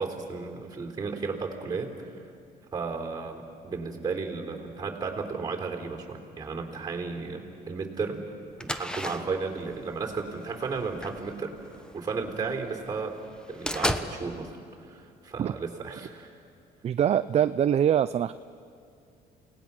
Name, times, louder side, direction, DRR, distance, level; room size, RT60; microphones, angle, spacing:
voice 1, 0.0-2.2 2.7-8.2 8.6-11.6 11.9-13.2 13.5-14.5 14.8-16.3, right 4 dB, 25° right, 1 dB, 3.6 m, -34 dB
sound 1, 8.6-12.4 12.8-12.9 13.2-14.1, equal, 5° left, 1.0 m, -34 dB
voice 2, 16.8-18.3, right 9 dB, 40° right, 12 dB, 0.4 m, -23 dB
29.0 x 19.0 x 6.1 m, 2.4 s
cardioid pair, 110°, 17 cm